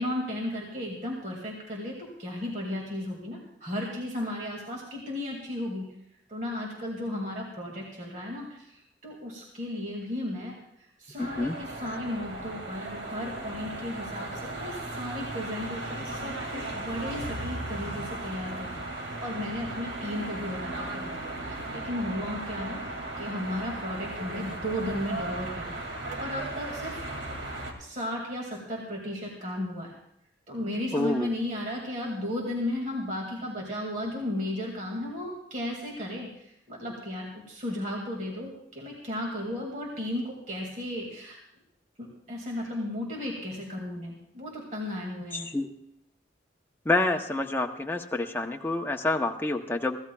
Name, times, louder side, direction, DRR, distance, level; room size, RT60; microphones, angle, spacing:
voice 1, 0.0-5.9 6.3-10.6 11.0-25.8 26.2-27.0 27.8-29.9 30.5-36.3 36.7-41.4 42.0-45.5, left 1 dB, 40° right, -2 dB, 2.1 m, -35 dB
voice 2, 11.2-11.6 30.9-31.3 45.3-45.7 46.8-50.0, left 2 dB, 10° left, 3 dB, 0.7 m, -28 dB
sound 1, 11.2-27.7, right 2 dB, 85° right, 2.3 m, -36 dB
24.0 x 15.5 x 2.3 m, 0.75 s
head